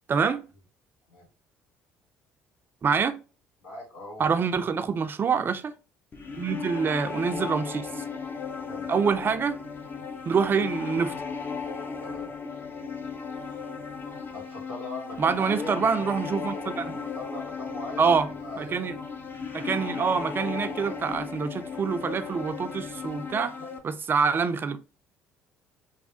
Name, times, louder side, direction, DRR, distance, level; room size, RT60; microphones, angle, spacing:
voice 1, 0.1-0.4 2.8-3.2 4.2-5.7 6.3-8.0 8.9-9.6 10.3-11.1 15.2-17.0 18.0-18.3 18.6-19.0 19.5-23.5 23.8-24.8, right 5 dB, 35° right, 0.4 m, -26 dB
voice 2, 3.6-4.3 6.3-6.4 8.6-8.9 12.0-12.3 14.3-15.9 17.2-18.7 23.3-23.7, left 2 dB, 85° left, 1.3 m, -40 dB
sound 1, 6.1-23.8, left 5 dB, 35° left, 0.6 m, -36 dB
3.2 x 2.1 x 2.7 m
hypercardioid pair, 55°, 6 cm